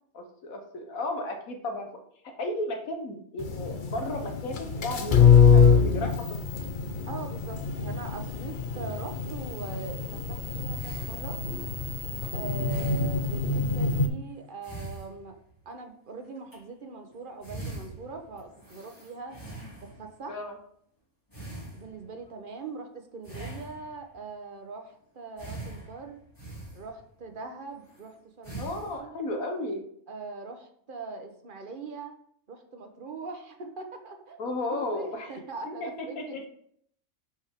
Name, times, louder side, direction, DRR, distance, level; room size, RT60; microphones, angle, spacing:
voice 1, 0.1-1.9 2.4-6.3 12.8-12.9 20.3-20.6 28.6-29.8 34.4-35.3 35.8-36.5, left 2 dB, 80° left, 4 dB, 1.5 m, -34 dB
sound 1, 3.4-14.1, left 6 dB, 45° left, 0.8 m, -24 dB
voice 2, 7.1-10.0 10.3-11.4 12.3-15.4 15.6-19.4 19.8-20.4 21.7-26.2 26.7-29.2 30.1-32.2 32.5-36.4, right 4 dB, 40° right, 5 dB, 1.0 m, -41 dB
sound 2, 10.7-11.7 12.7-13.5 14.5-15.8 16.4-16.6 17.1-17.2 17.4-20.2 21.3-22.2 23.2-24.2 25.4-27.2 27.8-28.1 28.4-29.0, right 2 dB, 15° left, 3.0 m, -42 dB
10.5 x 4.8 x 3.6 m, 0.66 s
omnidirectional pair, 1.5 m